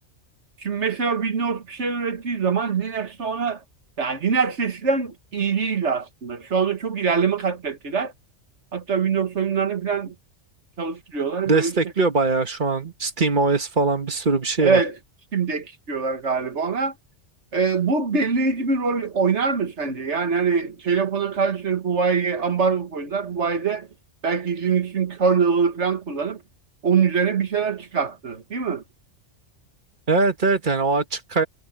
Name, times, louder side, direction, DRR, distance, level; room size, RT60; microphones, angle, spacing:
voice 1, 0.6-3.6 4.0-8.1 8.7-10.2 10.8-11.8 14.6-15.0 15.3-16.9 17.5-23.9 24.2-26.4 26.8-28.8, right 5 dB, 70° right, 1.9 m, -23 dB
voice 2, 11.5-14.8 30.1-31.5, right 3 dB, 40° right, 1.7 m, -21 dB
omnidirectional pair, 1.2 m